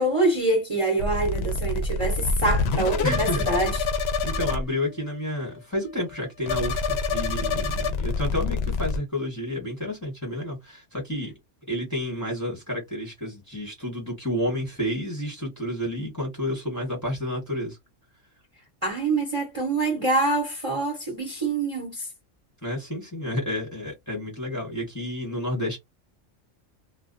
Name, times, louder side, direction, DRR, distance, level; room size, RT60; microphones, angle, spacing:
voice 1, 0.0-3.9 18.8-22.1, right 2 dB, 30° right, 0.7 m, -25 dB
sound 1, 1.0-4.6 4.9-5.2 5.5-5.6 5.8-6.2 6.5-9.0, left 3 dB, 65° left, 0.7 m, -26 dB
voice 2, 3.0-3.5 4.2-11.3 11.7-17.8 22.6-25.8, left 1 dB, 15° left, 1.1 m, -30 dB
2.2 x 2.2 x 2.5 m
omnidirectional pair, 1.3 m